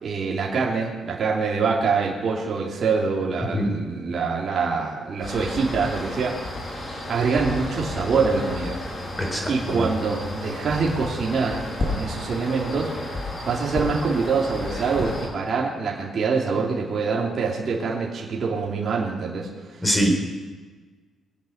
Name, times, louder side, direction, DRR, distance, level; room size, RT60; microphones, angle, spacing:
voice 1, 0.0-6.5 7.1-8.8 9.5-12.9 13.4-19.5, right 4 dB, 50° right, -3 dB, 3.1 m, -25 dB
sound 1, 5.2-15.3, left 2 dB, 40° left, 6.3 m, -32 dB
voice 2, 9.2-9.5 9.8-9.9 19.8-20.1, equal, 10° left, 2 dB, 4.5 m, -22 dB
23.0 x 8.7 x 6.8 m, 1.4 s
cardioid pair, 90°, 0 cm